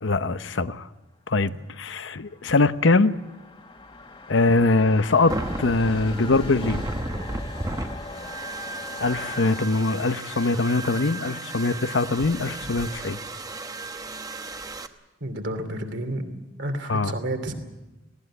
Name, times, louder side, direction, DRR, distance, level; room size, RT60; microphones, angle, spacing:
voice 1, 0.0-0.9 1.3-3.2 4.3-6.8 9.0-13.2 16.9-17.1, left 3 dB, 75° left, 12 dB, 0.8 m, -22 dB
sound 1, 2.0-9.6, left 2 dB, 30° left, 1.7 m, -41 dB
sound 2, 5.3-14.9, right 2 dB, 20° right, 1.1 m, -34 dB
voice 2, 15.2-17.5, right 1 dB, 65° right, 7 dB, 2.9 m, -31 dB
19.0 x 17.0 x 9.9 m, 1.1 s
head